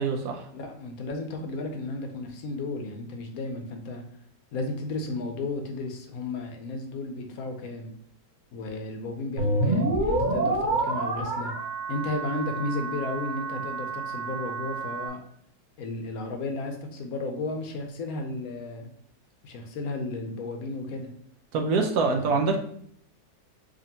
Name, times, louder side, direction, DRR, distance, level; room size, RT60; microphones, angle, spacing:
voice 1, 0.0-0.5 21.5-22.6, right 4 dB, 70° right, 3 dB, 1.0 m, -25 dB
voice 2, 0.5-4.0 4.5-7.9 8.5-11.5 11.9-15.2 15.8-18.9 19.4-21.1 22.2-22.4, left 2 dB, 65° left, 4 dB, 1.0 m, -33 dB
sound 1, 9.4-15.1, right 2 dB, 35° right, 0.8 m, -28 dB
5.1 x 2.5 x 2.8 m, 0.66 s
omnidirectional pair, 1.8 m